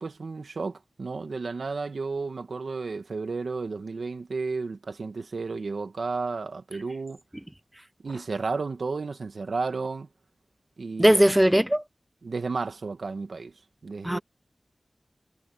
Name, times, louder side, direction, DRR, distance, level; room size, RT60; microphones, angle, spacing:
voice 1, 0.0-7.2 8.0-10.1 10.8-11.2 12.2-13.5 13.8-14.2, right 4 dB, 80° right, 1.9 m, -32 dB
voice 2, 11.0-11.8 14.0-14.2, equal, 10° right, 0.5 m, -19 dB
wide cardioid pair, 80°, 0 cm